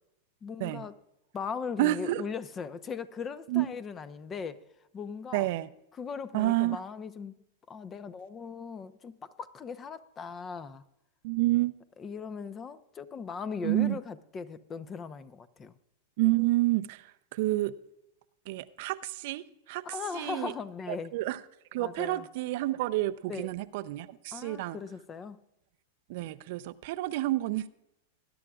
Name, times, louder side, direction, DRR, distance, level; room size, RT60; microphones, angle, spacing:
voice 1, 0.4-0.9 1.3-4.6 4.9-5.5 5.9-7.4 7.7-10.8 12.0-15.7 19.8-21.1 21.8-22.3 23.3-23.5 24.3-25.4, left 5 dB, 25° left, 0.8 m, -39 dB
voice 2, 1.8-2.2 3.5-3.7 5.3-5.7 6.3-6.8 11.2-11.7 13.6-14.0 16.2-17.8 18.5-19.8 20.1-20.5 20.9-21.4 21.7-24.8 26.1-27.7, right 17 dB, 60° right, 0.5 m, -29 dB
20.5 x 11.0 x 2.4 m
hypercardioid pair, 100°, 0 cm